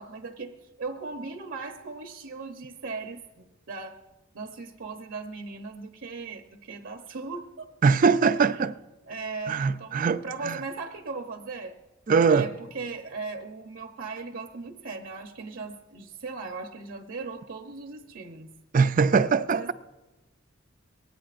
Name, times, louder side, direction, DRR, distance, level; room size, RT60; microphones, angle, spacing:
voice 1, 0.0-4.0 4.3-7.7 8.2-8.6 9.1-11.8 12.3-18.5 19.5-19.7, right 4 dB, 70° right, 0.9 m, -38 dB
voice 2, 7.8-8.7 9.5-10.6 12.1-12.5 18.7-19.7, right 5 dB, 40° right, 0.4 m, -22 dB
23.5 x 17.5 x 2.5 m
head